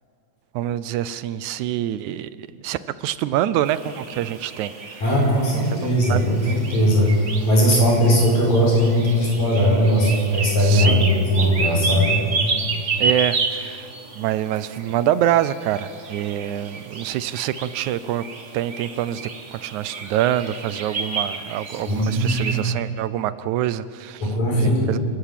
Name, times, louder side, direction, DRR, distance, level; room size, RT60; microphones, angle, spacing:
voice 1, 0.6-4.7 5.6-6.2 10.6-11.0 13.0-13.9 14.2-18.2 18.5-19.2 19.5-24.2 24.6-25.0, right 12 dB, 80° right, 15 dB, 2.0 m, -25 dB
sound 1, 3.7-22.6, right 4 dB, 40° right, 1.0 m, -31 dB
voice 2, 5.0-7.1 7.5-12.2 21.9-22.6 24.2-25.0, equal, 65° left, -2 dB, 7.2 m, -19 dB
28.5 x 13.5 x 8.4 m, 2.3 s
omnidirectional pair, 3.5 m